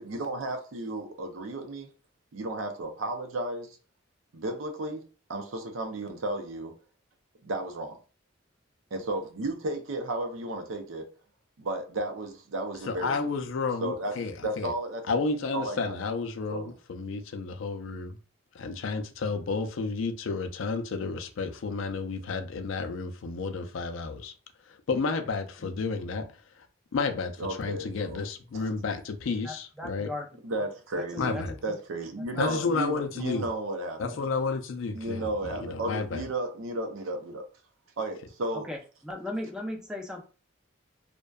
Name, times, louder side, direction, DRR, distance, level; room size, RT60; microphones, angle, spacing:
voice 1, 0.0-1.9 2.3-3.8 4.3-5.0 5.3-6.7 7.4-8.0 8.9-11.1 11.6-13.1 13.8-15.2 15.5-15.9 16.5-16.7 27.4-28.2 28.5-28.7 30.4-34.2 34.9-37.4 38.0-38.7, right 2 dB, 85° right, 0.5 m, -33 dB
voice 2, 12.9-14.7 15.1-18.2 18.5-24.3 24.7-26.3 26.9-30.1 31.2-31.5 32.4-33.5 34.0-36.2, left 4 dB, 80° left, 0.4 m, -31 dB
voice 3, 29.4-30.3 30.9-31.8 32.2-32.8 38.5-40.2, left 1 dB, 5° right, 0.4 m, -38 dB
2.5 x 2.1 x 2.2 m
head